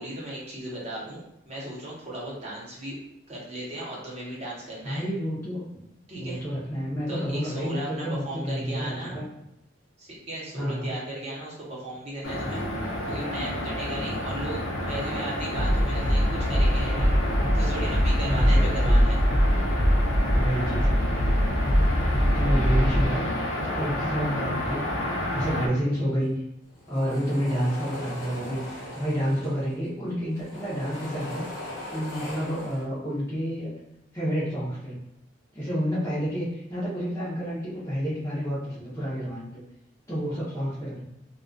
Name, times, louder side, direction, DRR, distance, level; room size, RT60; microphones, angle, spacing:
voice 1, 0.0-3.0 3.3-5.1 6.1-6.4 7.1-9.2 10.0-19.2, right 1 dB, 35° right, -6 dB, 0.8 m, -36 dB
voice 2, 4.8-5.6 6.2-9.3 10.5-11.0 18.2-19.1 20.3-21.1 22.3-23.3 23.5-24.9 25.3-26.4 26.9-33.8 34.1-35.0 35.5-39.6 40.1-41.0, equal, 15° left, -10 dB, 0.6 m, -29 dB
sound 1, 12.2-25.7, left 1 dB, 90° left, 0.6 m, -30 dB
sound 2, 15.5-23.1, equal, 70° right, 0.6 m, -22 dB
sound 3, 26.7-29.8 30.2-32.8, left 1 dB, 60° left, 0.8 m, -39 dB
2.3 x 2.2 x 2.5 m, 0.84 s
head